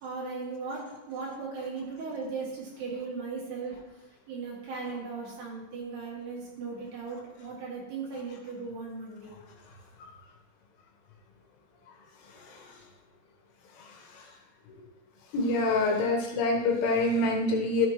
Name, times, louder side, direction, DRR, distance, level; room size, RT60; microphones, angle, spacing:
voice 1, 0.0-3.8 4.3-9.4, right 4 dB, 60° right, -5 dB, 4.0 m, -37 dB
voice 2, 15.3-17.9, left 2 dB, 85° left, 1 dB, 3.7 m, -25 dB
12.5 x 7.1 x 3.1 m, 1.0 s
omnidirectional pair, 5.4 m